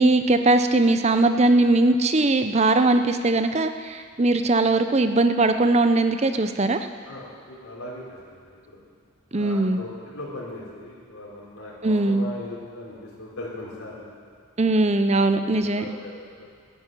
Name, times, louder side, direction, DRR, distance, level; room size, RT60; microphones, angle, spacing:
voice 1, 0.0-6.9 9.3-9.8 11.8-12.3 14.6-15.8, right 2 dB, 30° right, 9 dB, 0.6 m, -20 dB
voice 2, 7.1-8.8 9.3-14.1 14.8-15.0 15.3-16.5, left 1 dB, 85° left, -6 dB, 3.6 m, -39 dB
12.0 x 9.6 x 9.1 m, 2.1 s
head